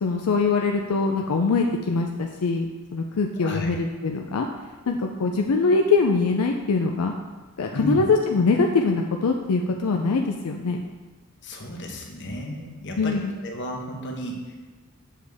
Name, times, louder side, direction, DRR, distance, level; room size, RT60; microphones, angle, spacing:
voice 1, 0.0-2.7 2.9-4.5 4.9-7.1 7.6-10.8 13.0-13.3, left 4 dB, 80° left, 2 dB, 0.5 m, -23 dB
voice 2, 3.4-3.7 7.7-8.0 11.4-14.5, left 1 dB, 55° left, 1 dB, 1.1 m, -32 dB
7.4 x 6.5 x 3.4 m, 1.3 s
head